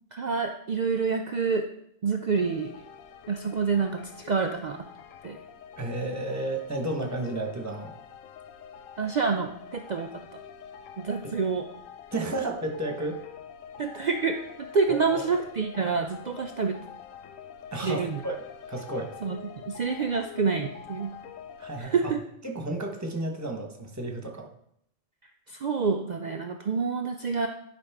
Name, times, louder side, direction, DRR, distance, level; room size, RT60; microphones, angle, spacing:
voice 1, 0.1-1.6 2.0-2.7 3.3-4.8 5.2-5.4 9.0-10.1 11.0-11.7 13.8-14.3 14.7-16.8 17.8-18.2 19.2-21.1 21.8-22.2 25.5-27.5, right 5 dB, 85° right, 4 dB, 0.4 m, -27 dB
sound 1, 2.3-21.8, left 8 dB, 85° left, 1.0 m, -46 dB
voice 2, 5.8-7.9 11.2-11.3 12.1-13.2 14.9-15.2 17.7-18.4 18.7-19.1 21.6-22.1 22.4-24.5, right 2 dB, 15° right, 2 dB, 1.0 m, -32 dB
10.0 x 5.1 x 3.5 m, 0.72 s
omnidirectional pair, 1.4 m